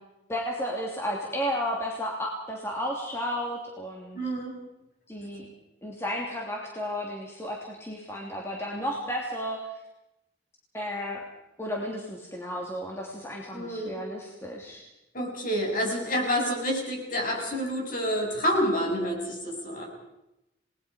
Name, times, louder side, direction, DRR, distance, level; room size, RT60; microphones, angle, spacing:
voice 1, 0.3-4.2 5.1-5.5 5.8-9.6 10.7-11.2 11.6-14.8, equal, 15° left, -2 dB, 3.0 m, -33 dB
voice 2, 4.1-4.6 13.5-14.0 15.1-19.9, equal, 50° left, 0 dB, 6.9 m, -28 dB
29.0 x 20.0 x 5.2 m, 0.90 s
head